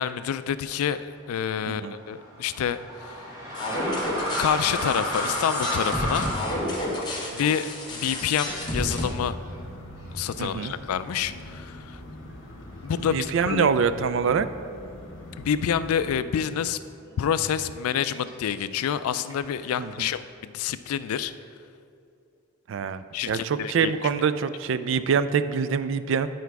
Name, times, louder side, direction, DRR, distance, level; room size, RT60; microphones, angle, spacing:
voice 1, 0.0-3.2 4.4-6.3 7.3-9.3 10.1-12.0 12.8-13.7 15.4-16.8 17.2-21.3 23.1-23.9, left 8 dB, 90° left, 14 dB, 0.3 m, -28 dB
sound 1, 1.5-9.1 9.4-9.5 10.3-10.8 11.5-11.6 11.9-13.6 13.9-14.5 14.7-18.5 19.3-20.2, equal, 15° right, 1.3 m, -34 dB
sound 2, 3.5-9.1, left 1 dB, 20° left, 1.1 m, -31 dB
sound 3, 8.4-16.2, left 1 dB, 65° left, 1.3 m, -42 dB
voice 2, 10.4-10.7 13.0-14.5 19.8-20.1 22.7-26.3, right 6 dB, 60° right, 12 dB, 0.3 m, -25 dB
10.0 x 4.6 x 4.7 m, 2.4 s
head